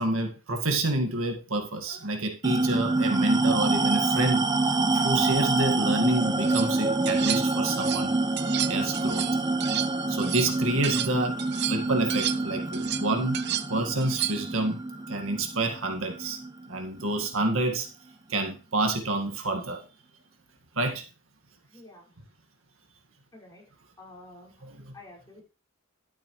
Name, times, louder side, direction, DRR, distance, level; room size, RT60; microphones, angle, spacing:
voice 1, 0.0-4.5 4.9-8.1 8.7-9.3 10.1-13.4 13.7-14.8 15.1-16.4 16.7-17.9 18.3-19.8 20.8-21.0 24.6-24.9, right 2 dB, 75° right, 4 dB, 2.0 m, -28 dB
sound 1, 2.4-17.3, right 2 dB, 20° right, 0.8 m, -27 dB
sound 2, 6.2-6.7 7.1-8.1 8.4-11.1 11.4-14.6, right 12 dB, 55° right, 0.6 m, -32 dB
voice 2, 21.7-22.1 23.3-23.6 24.0-25.4, left 2 dB, 20° left, -5 dB, 5.6 m, -50 dB
12.0 x 8.6 x 3.2 m, 0.32 s
head